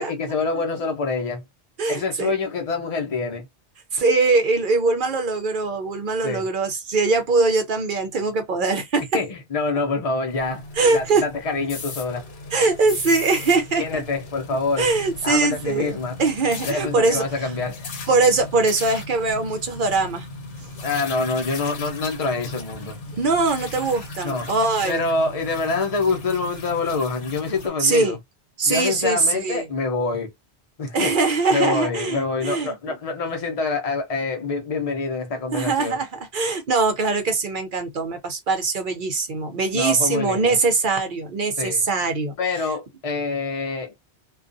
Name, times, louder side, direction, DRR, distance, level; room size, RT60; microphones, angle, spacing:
voice 1, 0.0-1.4 1.9-3.5 6.2-6.5 9.1-10.6 10.9-12.3 13.8-14.9 15.2-16.2 16.7-17.8 20.8-23.0 24.2-24.5 24.8-28.2 28.6-30.3 30.8-31.1 31.5-36.0 39.7-40.6 41.6-41.8 42.4-43.9, left 3 dB, 35° left, 0.7 m, -26 dB
voice 2, 1.8-2.3 3.9-9.0 10.8-11.2 12.5-14.0 14.8-15.9 16.2-17.2 18.1-20.3 23.2-25.0 27.8-28.2 28.6-29.6 30.9-33.0 35.5-42.3, right 3 dB, 55° right, 0.7 m, -22 dB
sound 1, 10.3-27.7, left 3 dB, 70° left, 1.0 m, -37 dB
2.4 x 2.3 x 2.5 m
omnidirectional pair, 1.1 m